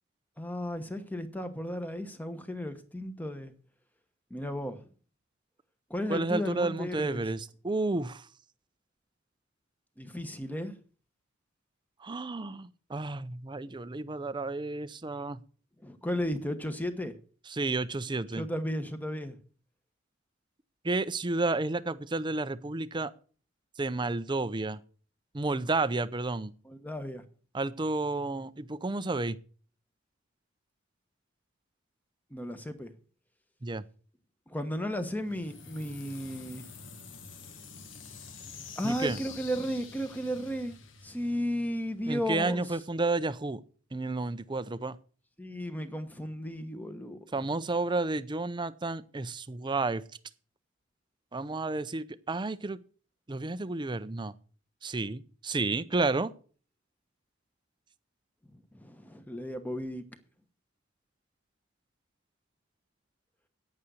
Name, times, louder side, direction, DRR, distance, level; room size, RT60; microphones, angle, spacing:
voice 1, 0.4-3.5 4.3-4.9 5.9-7.2 10.0-10.7 15.8-17.1 18.4-19.4 26.6-27.2 32.3-32.9 34.5-36.7 38.8-40.8 41.0-42.7 45.4-47.2 58.5-60.0, equal, 10° left, 1.1 m, -34 dB
voice 2, 6.1-8.3 12.0-15.4 17.5-18.5 20.8-23.1 23.8-24.8 25.3-26.5 27.5-29.4 33.6-33.8 38.8-39.2 42.1-43.6 43.9-45.0 47.3-50.0 51.3-52.8 53.3-54.3 54.8-56.3, right 3 dB, 25° right, 0.5 m, -31 dB
sound 1, 35.2-42.1, left 5 dB, 65° left, 1.4 m, -47 dB
9.4 x 8.7 x 6.3 m
head